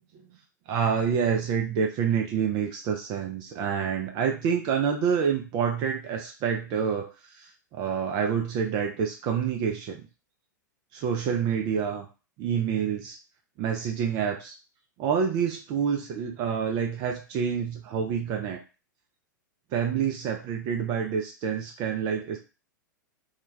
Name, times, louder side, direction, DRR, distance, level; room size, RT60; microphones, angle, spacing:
voice 1, 0.7-10.0 10.9-12.1 12.4-13.2 13.6-14.6 15.0-18.6 19.7-22.4, right 7 dB, 35° right, 2 dB, 0.4 m, -27 dB
2.2 x 2.1 x 3.2 m, 0.32 s
figure-of-eight pair, 100°, 11 cm